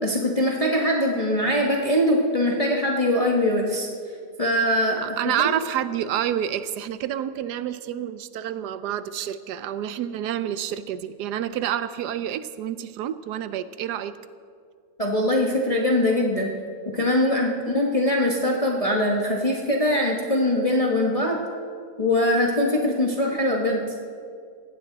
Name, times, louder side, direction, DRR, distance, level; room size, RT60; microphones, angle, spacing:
voice 1, 0.0-3.9 4.4-5.0 5.2-5.3 15.0-16.5 16.9-21.4 22.0-23.8, left 1 dB, 25° left, -1 dB, 1.3 m, -22 dB
voice 2, 5.0-14.2 17.6-17.8, right 10 dB, 85° right, 13 dB, 1.2 m, -28 dB
19.0 x 15.5 x 4.0 m, 2.2 s
omnidirectional pair, 1.7 m